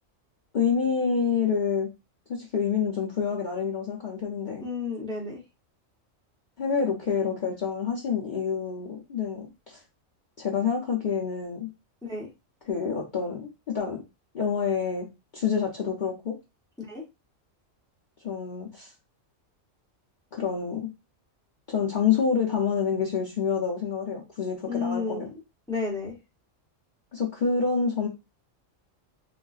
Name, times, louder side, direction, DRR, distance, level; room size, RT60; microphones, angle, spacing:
voice 1, 0.5-1.9 2.3-4.7 6.6-9.8 10.4-11.7 12.7-13.5 13.7-14.0 14.3-15.1 15.3-16.4 18.2-18.9 20.3-20.8 21.7-25.3 27.1-28.1, left 6 dB, 50° left, -3 dB, 0.6 m, -27 dB
voice 2, 4.6-5.4 12.0-12.3 16.8-17.0 24.7-25.3 25.7-26.2, left 4 dB, 5° left, -1 dB, 0.6 m, -32 dB
3.7 x 2.4 x 2.3 m, 0.25 s
omnidirectional pair, 1.4 m